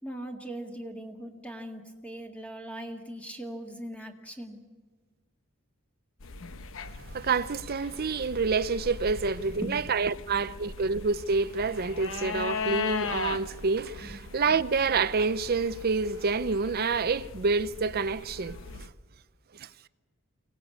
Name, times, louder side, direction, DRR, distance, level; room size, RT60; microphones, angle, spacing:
voice 1, 0.0-4.6 9.4-10.1 14.0-14.2, right 1 dB, 5° left, 1.9 m, -40 dB
sound 1, 6.2-18.9, left 5 dB, 65° left, 1.0 m, -39 dB
voice 2, 7.1-18.9 19.6-19.7, right 4 dB, 45° right, 0.6 m, -28 dB
23.5 x 18.0 x 8.5 m
head